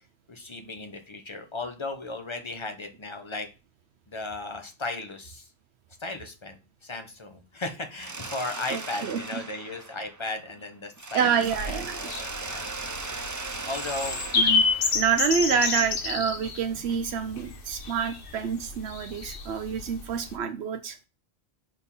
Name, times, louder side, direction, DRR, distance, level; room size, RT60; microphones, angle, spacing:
voice 1, 0.3-3.5 4.1-5.5 6.0-11.3 11.6-12.7 13.6-14.2 15.5-15.9 16.7-16.8, left 2 dB, 30° left, 5 dB, 1.1 m, -36 dB
Mechanisms, 8.0-10.6 11.0-15.8, right 3 dB, 25° right, 0.4 m, -38 dB
voice 2, 8.7-9.4 11.1-12.0 14.3-14.6 14.9-21.0, right 7 dB, 85° right, 7 dB, 0.9 m, -27 dB
sound 1, 11.4-20.3, left 4 dB, 60° left, 1.2 m, -30 dB
5.3 x 4.4 x 5.4 m, 0.29 s
omnidirectional pair, 1.1 m